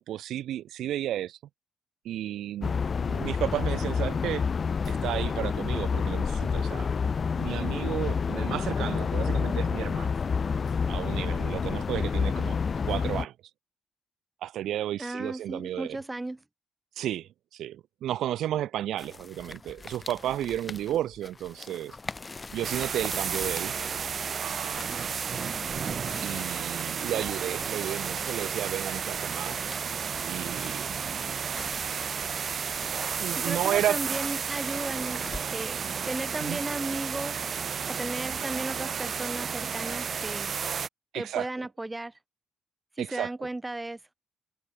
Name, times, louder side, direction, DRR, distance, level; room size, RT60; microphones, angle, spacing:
voice 1, 0.0-1.4 2.0-4.4 4.9-10.1 10.9-12.6 12.8-13.3 14.4-16.0 17.0-22.0 22.5-23.7 24.4-24.9 26.2-29.6 30.2-30.9 33.2-34.0 36.4-36.6 41.1-41.5 43.0-43.3, right 12 dB, 80° right, 0.5 m, -33 dB
sound 1, 2.6-13.3, left 5 dB, 40° left, 0.6 m, -28 dB
voice 2, 15.0-16.4 33.4-35.2 35.5-35.8 36.1-37.4 37.9-40.5 41.1-42.1 43.0-44.0, right 2 dB, 15° right, 1.6 m, -35 dB
sound 2, 19.0-35.9, left 3 dB, 25° left, 1.3 m, -45 dB
sound 3, 22.6-40.9, right 6 dB, 45° right, 1.1 m, -32 dB
cardioid pair, 90°, 0 cm